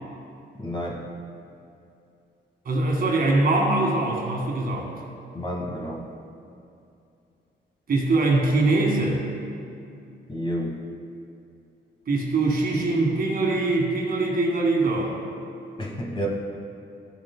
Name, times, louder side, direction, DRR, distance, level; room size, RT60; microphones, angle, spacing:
voice 1, 0.6-1.0 5.3-6.0 10.3-10.8 15.8-16.3, equal, 25° left, -2 dB, 1.3 m, -30 dB
voice 2, 2.7-4.9 7.9-9.2 12.1-15.2, right 2 dB, 50° right, -1 dB, 1.7 m, -22 dB
14.0 x 6.9 x 2.2 m, 2.6 s
cardioid pair, 130°, 19 cm